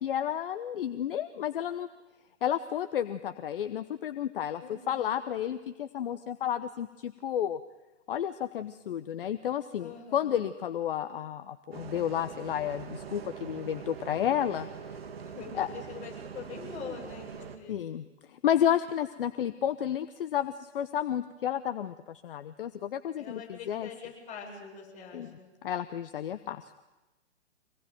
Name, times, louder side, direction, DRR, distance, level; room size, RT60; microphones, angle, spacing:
voice 1, 0.0-1.9 2.4-7.6 8.1-14.7 15.6-15.7 17.7-23.9 25.1-25.3 25.6-26.8, left 10 dB, 50° left, 11 dB, 1.1 m, -31 dB
voice 2, 4.6-5.1 9.8-10.4 15.2-17.8 23.2-25.5, left 6 dB, 20° left, -2 dB, 7.4 m, -44 dB
Bus, 11.7-17.6, right 7 dB, 55° right, 2.5 m, -43 dB
25.5 x 20.0 x 9.3 m, 1.1 s
figure-of-eight pair, 125°, 36 cm